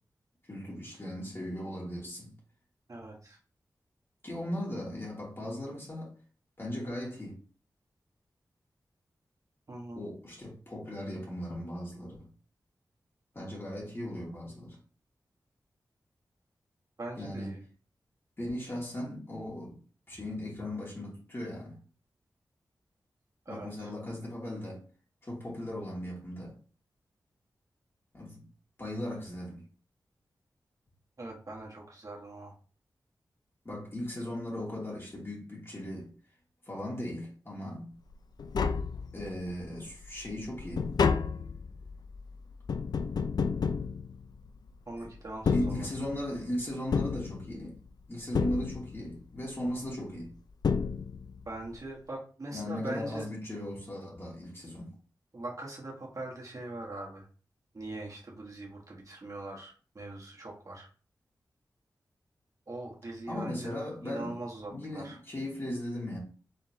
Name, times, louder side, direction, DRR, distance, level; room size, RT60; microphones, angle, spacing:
voice 1, 0.5-2.3 4.2-6.1 6.6-7.4 10.0-12.3 13.3-14.8 17.2-17.5 18.4-19.8 20.1-21.8 23.5-24.8 25.2-26.6 28.1-28.4 28.8-29.6 33.6-36.1 36.7-38.0 39.1-41.0 45.0-45.1 45.5-47.8 48.1-50.3 52.5-54.9 63.3-64.3 64.7-66.2, left 1 dB, 30° left, 2.5 m, -37 dB
voice 2, 2.9-3.4 9.7-10.0 17.0-17.6 23.4-23.9 31.2-32.5 44.9-45.9 51.4-53.3 55.3-57.2 57.7-60.9 62.7-63.7 64.0-65.2, right 2 dB, 50° right, 1.6 m, -41 dB
Tap, 38.1-38.2 38.4-39.5 39.9-44.7 45.3-46.4 46.9-47.9 48.3-49.2 50.2-50.3 50.6-51.5 51.7-51.8, left 5 dB, 65° left, 0.3 m, -31 dB
4.2 x 3.7 x 2.9 m
cardioid pair, 60°, 8 cm